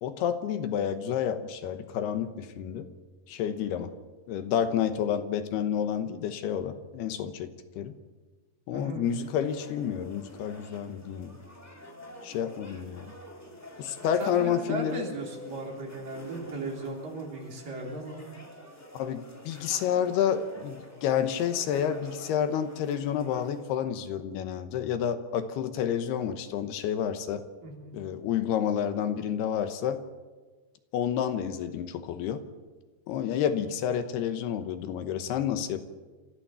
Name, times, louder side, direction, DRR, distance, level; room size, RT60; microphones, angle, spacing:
voice 1, 0.0-2.9 3.3-3.9 4.3-8.0 8.7-11.4 12.2-13.1 13.8-15.1 18.9-27.5 27.9-30.0 30.9-32.4 33.1-35.9, left 9 dB, 75° left, 9 dB, 3.0 m, -29 dB
voice 2, 8.7-9.0 14.2-18.2 27.6-27.9 33.4-33.5, right 2 dB, 55° right, 0 dB, 4.9 m, -37 dB
sound 1, 9.0-23.7, left 1 dB, 25° left, 0.3 m, -48 dB
28.0 x 14.0 x 6.9 m, 1.3 s
omnidirectional pair, 4.8 m